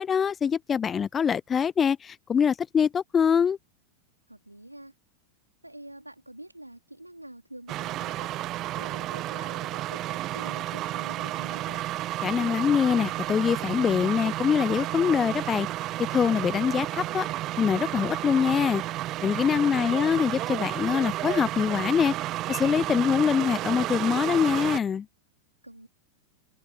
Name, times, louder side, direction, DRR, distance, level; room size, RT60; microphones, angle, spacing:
voice 1, 0.0-3.6 12.2-15.7 16.1-17.3 17.6-18.8 19.2-22.1 22.5-25.1, left 7 dB, 20° left, 0.4 m, -24 dB
voice 2, 4.3-5.0 5.6-8.5 8.8-11.8 25.6-25.9, right 1 dB, 85° right, 3.5 m, -46 dB
sound 1, 7.7-24.8, right 15 dB, 35° right, 1.4 m, -32 dB
figure-of-eight pair, 90°, 0 cm